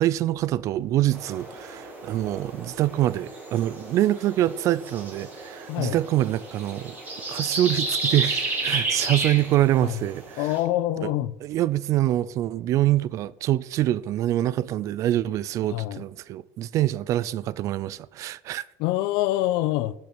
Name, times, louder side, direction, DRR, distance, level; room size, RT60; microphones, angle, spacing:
voice 1, 0.0-7.0 7.3-10.5 11.0-11.1 11.4-18.6, right 14 dB, 40° right, 0.4 m, -25 dB
sound 1, 1.1-10.6, right 2 dB, 20° right, 3.4 m, -32 dB
voice 2, 10.4-11.3 15.7-16.0 18.8-19.9, left 15 dB, 55° left, 0.6 m, -25 dB
12.0 x 6.9 x 6.0 m
supercardioid pair, 145°, 8 cm